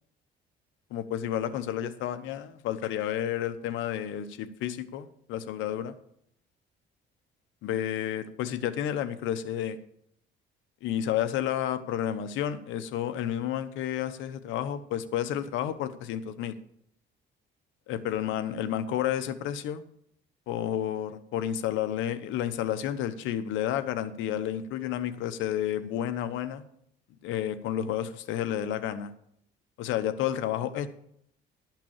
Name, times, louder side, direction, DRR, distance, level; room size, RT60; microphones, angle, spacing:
voice 1, 0.9-5.9 7.6-9.8 10.8-16.5 17.9-19.8 20.5-26.6 27.2-29.1 29.8-30.9, left 10 dB, 85° left, 12 dB, 0.9 m, -31 dB
11.5 x 5.9 x 7.2 m, 0.70 s
cardioid pair, 90°, 19 cm